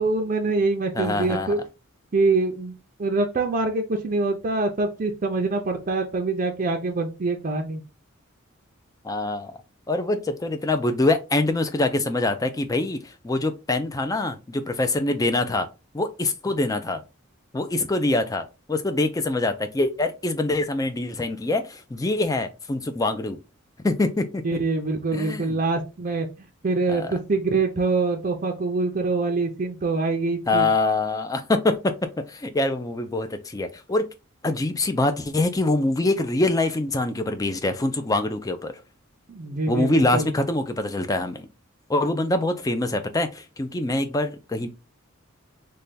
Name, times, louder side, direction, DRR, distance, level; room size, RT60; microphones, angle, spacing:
voice 1, 0.0-1.6 2.1-2.7 3.0-7.8 24.4-30.7 39.3-40.3, right 3 dB, 40° right, 0.5 m, -25 dB
voice 2, 0.9-1.5 9.0-9.5 9.9-15.7 15.9-17.0 17.5-23.4 23.8-24.6 25.1-25.6 26.9-27.1 30.5-31.9 32.3-34.1 34.4-38.7 39.7-41.5 41.9-44.7, left 2 dB, 15° left, 0.4 m, -24 dB
3.3 x 2.2 x 4.0 m
head